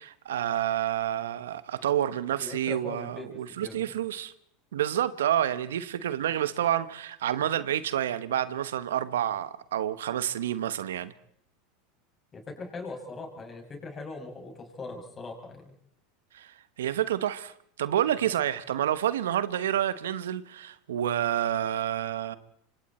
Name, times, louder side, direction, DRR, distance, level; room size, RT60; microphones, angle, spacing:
voice 1, 0.0-4.3 4.7-11.1 16.3-22.4, right 11 dB, 85° right, 1.1 m, -29 dB
voice 2, 2.4-3.3 3.6-3.9 12.3-15.7 18.2-18.3, left 3 dB, 25° left, 6.5 m, -40 dB
27.0 x 25.0 x 4.3 m
hypercardioid pair, 100°, 0 cm